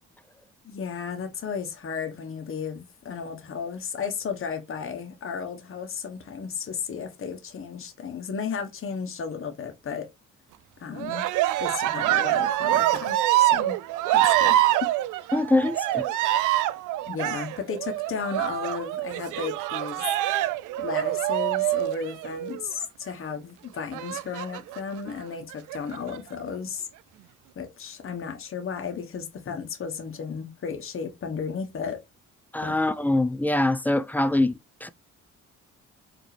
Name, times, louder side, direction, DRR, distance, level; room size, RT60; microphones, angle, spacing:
voice 1, 0.6-10.1 10.8-11.3 11.6-13.8 14.1-14.6 17.1-20.0 20.8-26.9 27.5-32.0 32.6-32.7, left 6 dB, 45° left, 1.2 m, -34 dB
Cheering, 11.0-22.7 23.9-24.8 25.5-26.2, right 14 dB, 85° right, 0.5 m, -25 dB
voice 2, 15.3-16.1 32.5-34.5 34.8-34.9, left 2 dB, 5° left, 0.4 m, -23 dB
4.8 x 2.9 x 3.3 m
cardioid pair, 90°, 30 cm